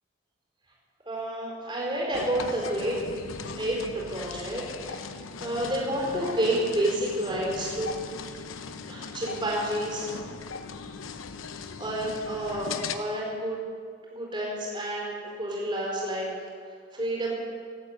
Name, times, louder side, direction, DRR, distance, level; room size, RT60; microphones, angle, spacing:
voice 1, 1.0-3.0 3.6-5.0 5.4-7.9 8.9-10.1 11.8-13.6 14.1-16.3 16.9-17.3, right 1 dB, 25° right, -3 dB, 4.8 m, -29 dB
sound 1, 2.1-13.0, left 5 dB, 80° left, 0.9 m, -39 dB
17.5 x 8.8 x 8.3 m, 2.1 s
head